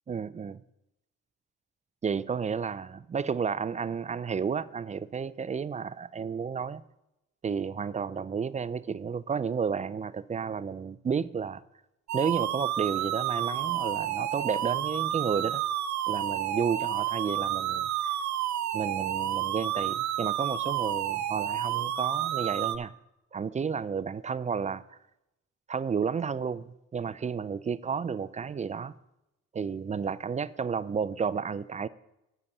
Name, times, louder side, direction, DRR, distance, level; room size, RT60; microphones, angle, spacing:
voice 1, 0.1-0.6 2.0-6.8 7.4-11.6 12.1-15.6 16.1-18.2 18.7-22.9 23.3-24.8 25.7-28.9 29.5-31.9, right 6 dB, 25° right, 0.3 m, -32 dB
sound 1, 12.1-22.8, right 11 dB, 70° right, 0.7 m, -30 dB
8.3 x 6.7 x 7.1 m
cardioid pair, 90°, 30 cm